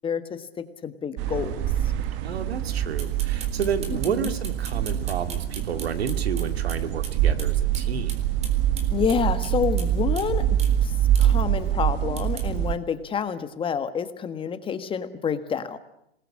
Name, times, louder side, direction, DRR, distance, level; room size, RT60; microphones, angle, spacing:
voice 1, 0.0-1.6 3.9-4.3 8.9-10.4 10.8-10.9 11.2-15.8, left 7 dB, 15° left, 10 dB, 1.5 m, -28 dB
sound 1, 1.2-12.8, right 11 dB, 35° right, 1.4 m, -25 dB
voice 2, 2.2-8.1, right 7 dB, 75° right, 8 dB, 2.4 m, -30 dB
sound 2, 3.0-7.1 7.4-7.5 7.7-7.8 8.1-9.9 10.2-10.3 10.6-10.7 11.1-11.3 12.2-12.5, right 4 dB, 20° right, 3.9 m, -39 dB
26.5 x 20.0 x 8.6 m, 0.78 s
hypercardioid pair, 120°, 31 cm